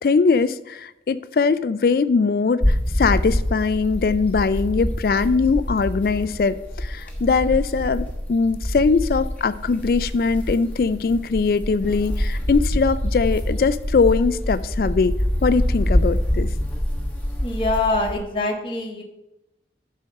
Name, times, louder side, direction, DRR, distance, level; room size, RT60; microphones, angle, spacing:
voice 1, 0.0-15.1 15.4-16.5, left 4 dB, 55° left, 14 dB, 0.3 m, -21 dB
sound 1, 2.6-18.2, equal, 10° left, 1.2 m, -25 dB
voice 2, 17.4-19.0, left 2 dB, 30° left, 0 dB, 1.1 m, -24 dB
10.5 x 4.4 x 6.5 m, 0.88 s
head